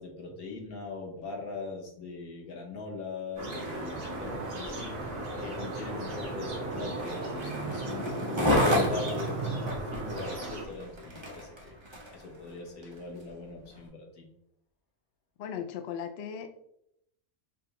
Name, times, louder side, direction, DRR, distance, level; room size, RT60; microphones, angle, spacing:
voice 1, 0.0-11.7 12.1-14.3, left 4 dB, 85° left, 0 dB, 1.5 m, -41 dB
Skateboard, 3.4-12.2 12.8-12.9, equal, 25° right, 0.7 m, -32 dB
sound 1, 3.4-10.6, right 1 dB, 65° right, 1.5 m, -37 dB
voice 2, 15.4-16.5, left 8 dB, 65° left, 8 dB, 0.6 m, -37 dB
6.7 x 2.3 x 2.9 m, 0.76 s
omnidirectional pair, 1.5 m